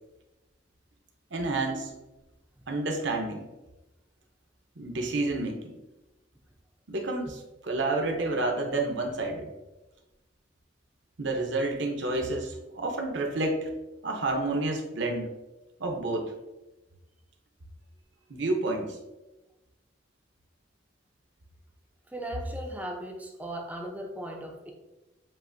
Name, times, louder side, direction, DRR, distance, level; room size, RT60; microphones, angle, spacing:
voice 1, 1.3-1.9 2.7-3.5 4.8-5.8 6.9-9.5 11.2-13.7 14.0-15.3 15.8-16.3 18.3-19.0, right 2 dB, 70° right, 2 dB, 0.8 m, -29 dB
voice 2, 22.1-24.7, right 1 dB, 10° right, 2 dB, 0.5 m, -37 dB
7.6 x 2.6 x 2.6 m, 1.0 s
head